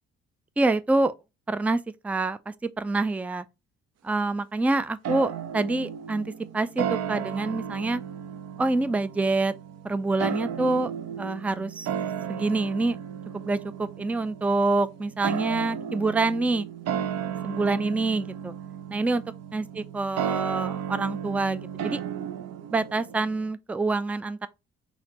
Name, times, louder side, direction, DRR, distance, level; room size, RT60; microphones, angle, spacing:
voice 1, 0.6-1.1 1.5-3.4 4.0-8.0 8.6-9.5 9.8-10.9 11.2-11.9 12.3-13.0 13.4-16.7 17.4-18.5 18.9-19.2 19.5-22.0 22.7-24.5, right 2 dB, 5° right, 0.4 m, -26 dB
sound 1, 5.0-23.5, right 8 dB, 55° right, 0.6 m, -34 dB
4.2 x 2.8 x 4.2 m
hypercardioid pair, 50°, 32 cm